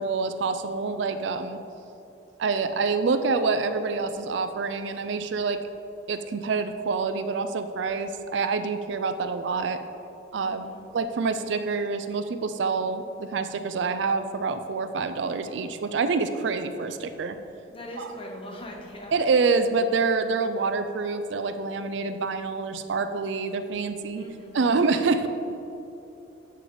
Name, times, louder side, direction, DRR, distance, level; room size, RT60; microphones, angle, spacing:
voice 1, 0.0-1.6 2.4-5.6 6.1-9.8 10.3-10.7 10.9-17.4 18.0-18.1 19.1-24.2 24.5-25.3, right 4 dB, 75° right, 9 dB, 0.4 m, -26 dB
voice 2, 10.4-10.9 17.7-19.2 19.5-19.6 24.1-24.7, left 1 dB, 30° left, 0 dB, 0.9 m, -41 dB
7.8 x 6.5 x 3.9 m, 2.9 s
head